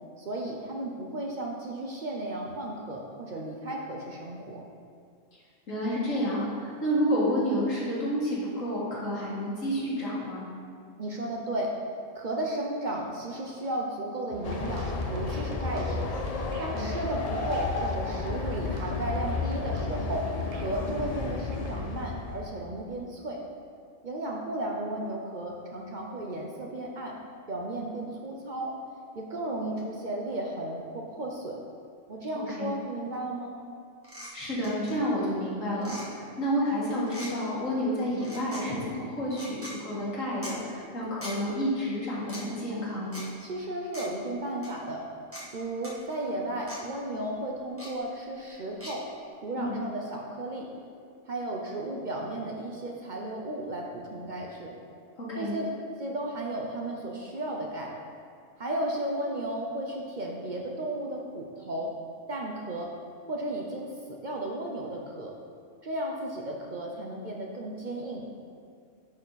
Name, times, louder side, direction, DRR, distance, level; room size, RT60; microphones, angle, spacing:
voice 1, 0.2-4.6 11.0-11.7 12.2-16.1 16.6-20.3 20.5-23.4 24.0-27.1 27.5-28.7 29.1-31.6 32.1-33.5 43.4-45.0 45.5-49.0 49.4-50.7 51.3-54.7 55.3-55.7 56.0-57.9 58.6-61.9 62.3-62.9 63.3-65.3 65.8-68.2, right 1 dB, 45° right, -1 dB, 0.7 m, -34 dB
voice 2, 5.7-10.5 16.7-17.0 32.3-32.7 34.3-43.3 49.5-49.8 55.2-55.5, equal, 85° left, -7 dB, 2.2 m, -30 dB
sound 1, 14.3-21.9, right 3 dB, 80° right, 1.0 m, -44 dB
Train, 14.4-22.6, left 4 dB, 60° left, 0.4 m, -32 dB
sound 2, 34.0-34.3 34.6-34.9 35.8-36.0 37.1-37.3 38.2-38.6 39.3-39.7 40.4-40.5 41.2-41.3 42.2-42.4 43.1-43.2 43.9-44.1 44.6-44.7 45.3-45.4 45.8-45.9 46.7-46.8 47.8-47.9 48.8-48.9, equal, 10° right, 1.4 m, -41 dB
9.8 x 4.3 x 4.0 m, 2.3 s
omnidirectional pair, 1.3 m